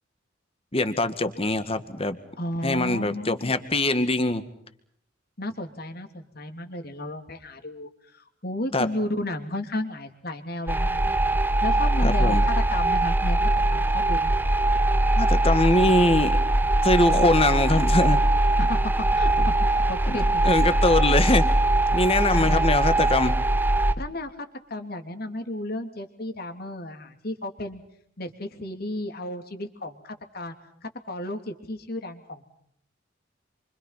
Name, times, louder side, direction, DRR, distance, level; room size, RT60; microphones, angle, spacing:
voice 1, 0.7-2.2 2.6-4.4 8.7-8.9 12.0-12.4 15.2-16.4 16.8-18.2 20.1-21.5 21.9-23.4, left 2 dB, 30° left, 10 dB, 2.0 m, -22 dB
voice 2, 2.4-3.6 5.4-11.3 11.6-13.4 13.7-14.3 18.6-20.6 21.9-22.0 22.3-22.7 24.0-27.8 28.2-30.5 30.8-32.4, left 1 dB, 50° left, 6 dB, 3.1 m, -33 dB
sound 1, 10.7-23.9, right 1 dB, 10° right, 1.0 m, -21 dB
28.0 x 25.5 x 5.9 m, 0.69 s
head